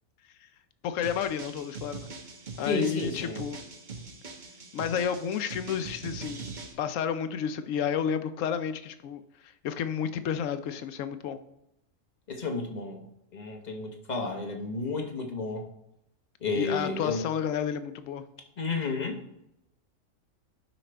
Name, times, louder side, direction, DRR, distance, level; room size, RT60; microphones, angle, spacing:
voice 1, 0.8-2.1 2.6-3.6 4.7-6.5 6.8-9.2 9.6-11.4 16.6-18.2, left 8 dB, 75° left, 10 dB, 1.0 m, -31 dB
sound 1, 1.0-6.7, right 4 dB, 40° right, 1.0 m, -42 dB
voice 2, 2.7-3.4 12.3-13.0 13.3-15.7 16.4-17.2 18.6-19.2, left 3 dB, 35° left, 3 dB, 1.0 m, -32 dB
12.0 x 5.1 x 3.3 m, 0.84 s
omnidirectional pair, 1.4 m